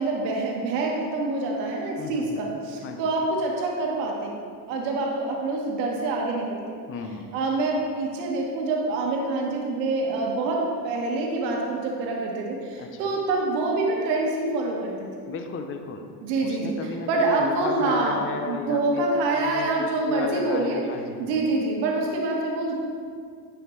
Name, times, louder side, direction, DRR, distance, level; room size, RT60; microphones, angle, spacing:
voice 1, 0.0-4.4 4.7-6.8 7.3-15.1 16.2-16.7 17.1-18.2 18.5-20.8 21.2-22.7, right 2 dB, 85° right, -1 dB, 1.3 m, -26 dB
voice 2, 2.0-2.4 2.8-3.1 6.9-7.3 12.7-13.1 15.3-16.1 16.4-19.0 19.4-21.4, left 5 dB, 25° left, 6 dB, 0.6 m, -34 dB
9.7 x 5.6 x 3.1 m, 2.2 s
supercardioid pair, 100°, 49 cm